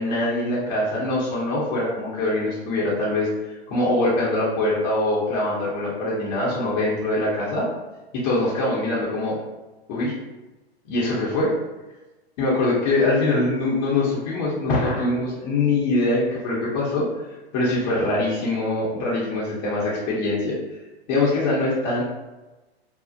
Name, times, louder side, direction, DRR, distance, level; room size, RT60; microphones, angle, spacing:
voice 1, 0.0-7.7 8.2-9.4 9.9-10.1 10.9-11.5 12.4-17.1 17.5-20.6 21.1-22.0, left 2 dB, 40° left, -7 dB, 0.8 m, -23 dB
2.3 x 2.0 x 2.6 m, 1.1 s
hypercardioid pair, 125°, 31 cm